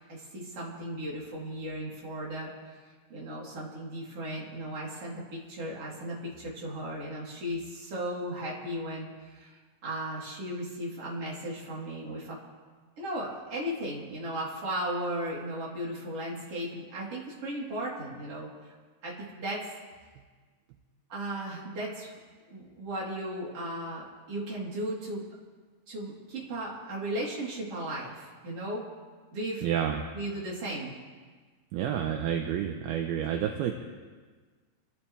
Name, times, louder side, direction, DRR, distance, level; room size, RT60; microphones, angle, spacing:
voice 1, 0.1-2.8 3.1-12.4 13.0-18.7 19.0-19.7 21.1-22.2 22.5-25.2 25.9-28.8 29.3-29.6 30.1-31.0, right 1 dB, 35° right, -5 dB, 4.3 m, -36 dB
voice 2, 29.6-30.1 31.7-33.7, right 9 dB, 75° right, 3 dB, 2.6 m, -29 dB
27.0 x 14.0 x 3.4 m, 1.5 s
omnidirectional pair, 4.9 m